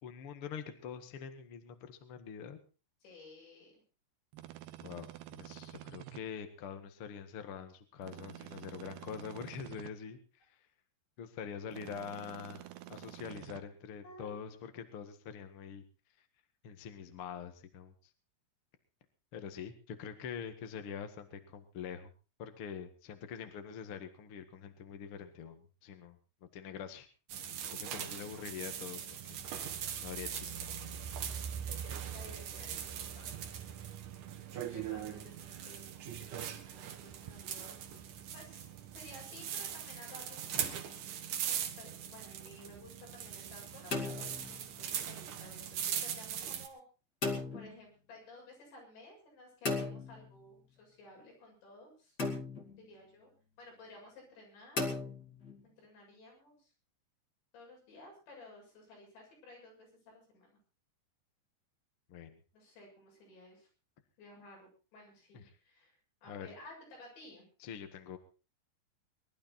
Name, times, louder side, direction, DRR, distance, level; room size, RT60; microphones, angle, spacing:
voice 1, 0.0-2.6 4.8-10.2 11.2-15.8 16.6-17.9 19.3-22.1 22.4-27.1 27.7-29.4 30.0-30.7 31.0-31.1 62.1-62.4 65.3-65.4 66.3-66.5 67.6-68.2, left 7 dB, 60° left, 8 dB, 1.5 m, -45 dB
voice 2, 3.0-3.8 14.0-14.3 31.7-33.3 34.5-35.9 36.7-37.8 38.3-38.7 38.9-40.6 41.4-46.8 47.5-52.2 52.8-53.3 53.6-54.8 55.6-56.7 57.5-60.5 62.5-63.7 64.2-67.5, left 2 dB, 80° left, -1 dB, 9.6 m, -55 dB
sound 1, 4.3-6.2 8.0-9.9 11.7-13.6, right 15 dB, 75° right, 2.9 m, -49 dB
sound 2, 27.3-46.7, right 9 dB, 60° right, 2.4 m, -41 dB
sound 3, 40.5-41.0 43.6-44.9 47.2-47.8 49.6-50.6 52.2-52.9 54.8-55.6, left 3 dB, 30° left, 2.3 m, -37 dB
22.0 x 12.0 x 4.3 m, 0.34 s
omnidirectional pair, 5.1 m